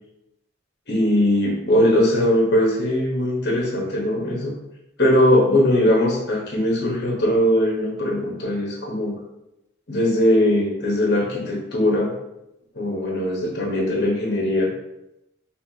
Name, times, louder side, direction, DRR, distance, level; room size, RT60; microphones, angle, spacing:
voice 1, 0.9-4.5 5.0-9.1 9.9-12.1 12.7-14.7, left 1 dB, 55° left, -3 dB, 1.2 m, -20 dB
5.5 x 2.5 x 2.8 m, 0.88 s
head